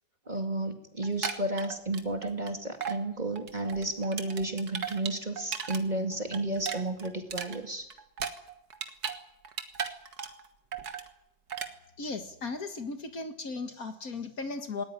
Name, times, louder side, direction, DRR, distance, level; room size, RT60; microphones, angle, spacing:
voice 1, 0.3-7.9, right 2 dB, 25° right, 6 dB, 2.3 m, -32 dB
sound 1, 1.0-2.5 2.8-3.0 3.4-5.8 6.1-9.2 9.5-10.5 10.7-11.1 11.5-11.7, right 7 dB, 60° right, 2.1 m, -36 dB
voice 2, 12.0-14.8, left 3 dB, 50° left, 8 dB, 2.1 m, -36 dB
20.0 x 18.5 x 10.0 m, 0.77 s
omnidirectional pair, 2.0 m